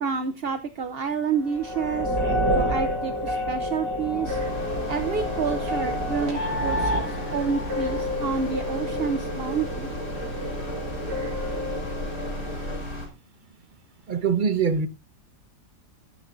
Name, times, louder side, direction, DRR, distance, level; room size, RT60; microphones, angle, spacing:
voice 1, 0.0-2.2 2.5-4.4 4.8-9.9, right 6 dB, 50° right, 0.7 m, -29 dB
sound 1, 1.4-12.8, left 1 dB, 80° right, 4.8 m, -29 dB
sound 2, 4.2-13.1, left 1 dB, 65° left, 4.8 m, -35 dB
voice 2, 14.1-14.9, right 6 dB, 35° right, 1.0 m, -23 dB
17.5 x 8.8 x 2.5 m
omnidirectional pair, 1.9 m